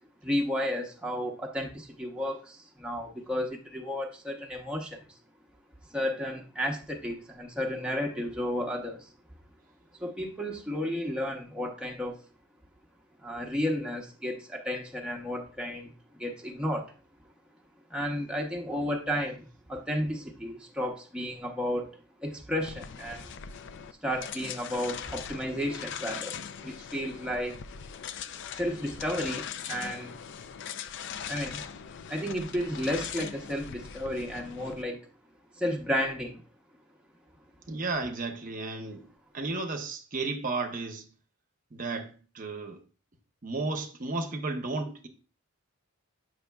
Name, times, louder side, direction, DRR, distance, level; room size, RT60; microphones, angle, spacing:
voice 1, 0.2-5.0 5.9-9.1 10.0-12.2 13.2-15.9 16.2-16.9 17.9-23.3 24.0-27.6 28.5-30.2 31.3-31.7 32.1-35.0 35.6-36.4, equal, 5° right, 0.8 m, -32 dB
sound 1, 22.6-34.8, left 8 dB, 55° left, 0.4 m, -41 dB
voice 2, 37.7-39.0 39.3-41.1 41.7-42.8 43.4-45.1, right 3 dB, 40° right, 0.8 m, -33 dB
8.4 x 6.2 x 2.3 m
head